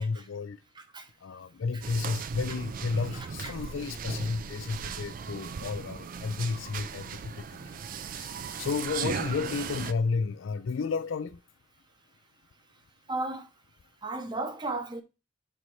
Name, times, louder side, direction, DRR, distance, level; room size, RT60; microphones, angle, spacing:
voice 1, 0.0-0.6 1.2-7.8 8.1-11.4, left 4 dB, 90° left, 0.4 m, -32 dB
voice 2, 0.7-1.1 1.7-1.8 3.1-3.6 13.1-13.5 14.0-15.0, right 2 dB, 25° right, 0.7 m, -35 dB
sound 1, 1.8-9.9, right 6 dB, 45° right, 0.4 m, -37 dB
7.9 x 4.0 x 3.0 m
head